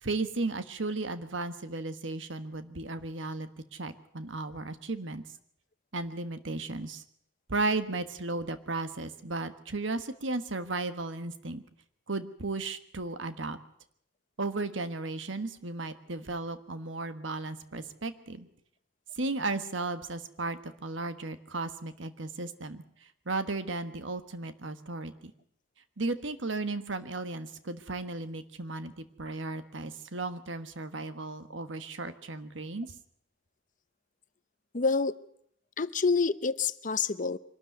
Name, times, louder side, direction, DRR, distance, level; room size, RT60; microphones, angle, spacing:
voice 1, 0.0-5.2 5.9-7.0 7.5-11.6 12.1-13.6 14.4-18.5 19.1-25.3 26.0-32.9, right 3 dB, 75° right, 10 dB, 1.4 m, -35 dB
voice 2, 34.7-35.2 35.8-37.4, left 4 dB, 45° left, 15 dB, 0.7 m, -27 dB
24.0 x 12.5 x 9.3 m, 0.69 s
head